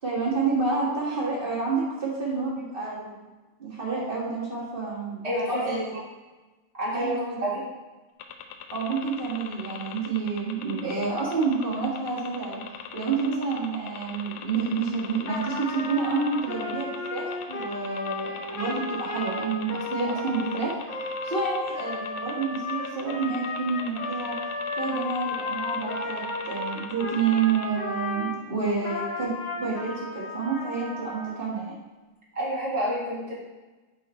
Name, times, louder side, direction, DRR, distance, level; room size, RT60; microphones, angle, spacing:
voice 1, 0.0-3.3 3.6-5.2 5.5-6.0 6.9-7.5 8.7-12.6 12.9-20.7 21.2-24.3 24.8-31.8, right 4 dB, 35° right, -6 dB, 0.8 m, -29 dB
voice 2, 5.2-5.8 6.7-7.6 32.3-33.3, equal, 75° right, -6 dB, 0.3 m, -29 dB
sound 1, 8.2-27.7, left 9 dB, 80° left, 2.1 m, -40 dB
Trumpet, 15.3-28.4 28.8-31.3, left 2 dB, 55° left, 1.3 m, -34 dB
10.5 x 4.2 x 4.4 m, 1.2 s
omnidirectional pair, 4.0 m